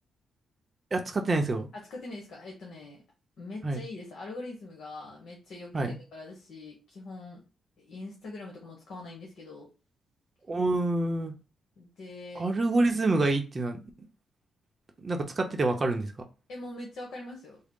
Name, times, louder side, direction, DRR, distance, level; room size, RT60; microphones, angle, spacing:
voice 1, 0.9-1.7 3.6-3.8 5.7-6.0 10.5-11.3 12.4-13.8 15.0-16.1, right 2 dB, 30° right, 4 dB, 0.7 m, -27 dB
voice 2, 1.7-3.0 3.4-7.4 7.8-9.7 11.8-12.5 16.5-17.6, left 2 dB, 70° left, -1 dB, 1.1 m, -43 dB
3.7 x 2.1 x 3.7 m, 0.32 s
cardioid pair, 120°, 0 cm